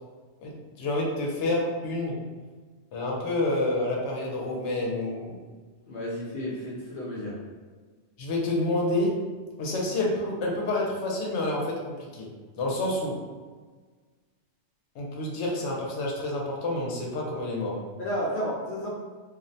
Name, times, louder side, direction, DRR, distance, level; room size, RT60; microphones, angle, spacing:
voice 1, 0.4-2.2 2.9-5.3 8.2-9.2 9.6-12.3 12.6-13.2 15.0-17.8, left 2 dB, 80° left, -2 dB, 0.9 m, -28 dB
voice 2, 5.9-7.4 18.0-18.9, equal, 60° left, -6 dB, 0.6 m, -32 dB
2.4 x 2.0 x 2.6 m, 1.4 s
omnidirectional pair, 1.2 m